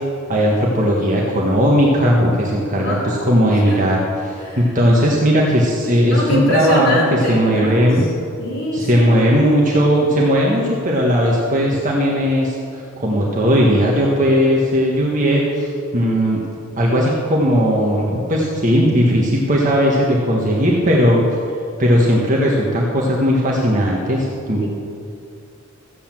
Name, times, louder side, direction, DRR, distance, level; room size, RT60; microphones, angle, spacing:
voice 1, 0.3-8.0 8.7-16.4 16.8-21.2 21.8-24.6, equal, 40° right, -3 dB, 1.5 m, -17 dB
voice 2, 2.8-3.8 4.4-4.6 6.1-7.9 8.4-9.3 24.6-24.7, left 1 dB, 65° left, -5 dB, 4.0 m, -23 dB
14.0 x 8.4 x 7.4 m, 2.5 s
head